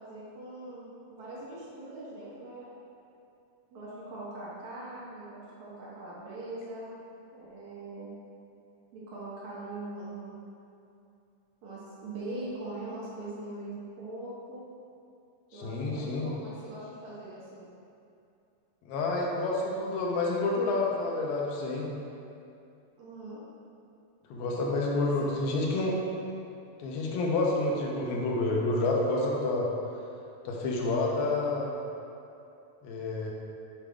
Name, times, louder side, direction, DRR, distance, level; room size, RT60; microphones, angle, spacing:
voice 1, 0.0-2.7 3.7-6.9 7.3-8.1 8.9-10.4 11.6-14.6 15.5-17.7 23.0-23.4 25.0-25.3, right 2 dB, 60° right, -8 dB, 2.3 m, -41 dB
voice 2, 15.5-16.3 18.9-21.9 24.3-26.0 26.8-29.7 30.5-31.8 32.8-33.3, left 2 dB, 90° left, -2 dB, 2.6 m, -29 dB
7.5 x 4.9 x 3.5 m, 2.6 s
omnidirectional pair, 4.1 m